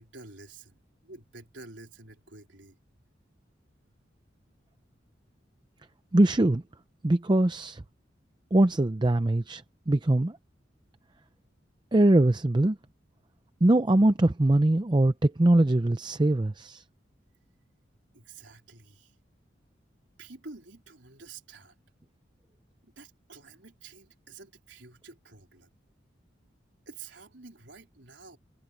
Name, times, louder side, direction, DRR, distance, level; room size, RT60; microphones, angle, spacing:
voice 1, 0.0-2.8 18.1-19.2 20.2-21.8 22.8-25.7 26.9-28.4, right 3 dB, 80° right, 3.8 m, -49 dB
voice 2, 6.1-6.6 7.0-7.8 8.5-10.4 11.9-12.8 13.6-16.8, right 1 dB, 25° right, 0.6 m, -22 dB
head